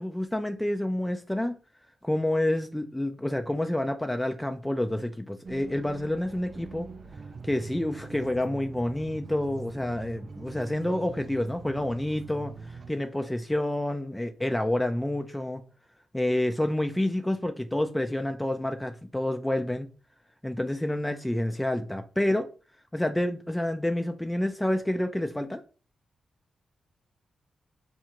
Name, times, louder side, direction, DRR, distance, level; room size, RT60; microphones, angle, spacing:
voice 1, 0.0-1.5 2.0-6.9 7.4-15.6 16.1-19.9 20.4-22.5 22.9-25.6, left 1 dB, 10° left, 0.4 m, -28 dB
sound 1, 5.4-12.9, right 4 dB, 55° right, 0.4 m, -42 dB
4.1 x 2.4 x 3.0 m
supercardioid pair, 45°, 0 cm